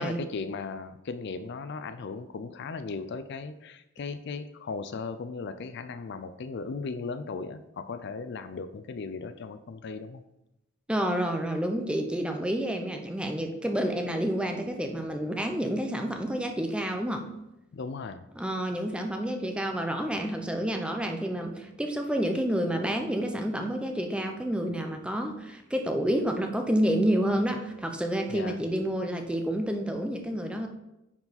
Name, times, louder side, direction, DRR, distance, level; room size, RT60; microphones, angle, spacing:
voice 1, 0.0-10.2 17.7-18.3 28.3-28.6, left 4 dB, 55° left, 11 dB, 0.4 m, -37 dB
voice 2, 10.9-17.3 18.3-30.7, right 1 dB, 5° right, 4 dB, 0.7 m, -29 dB
9.4 x 4.7 x 4.1 m, 0.91 s
head